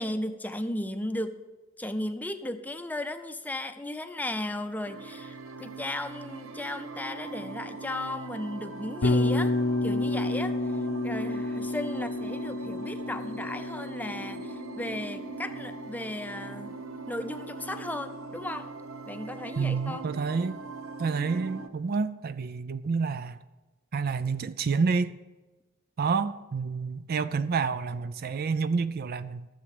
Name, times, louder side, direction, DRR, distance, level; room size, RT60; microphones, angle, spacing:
voice 1, 0.0-1.4 1.8-9.5 9.8-16.7 17.1-18.7 19.1-20.1, left 1 dB, 10° left, 0.6 m, -35 dB
sound 1, 4.8-21.7, right 3 dB, 85° right, 0.9 m, -41 dB
Bass guitar, 9.0-17.1, left 2 dB, 70° left, 0.8 m, -31 dB
voice 2, 19.6-20.6 21.0-23.4 23.9-25.2 26.0-29.5, right 5 dB, 50° right, 0.4 m, -29 dB
13.0 x 7.3 x 6.7 m
head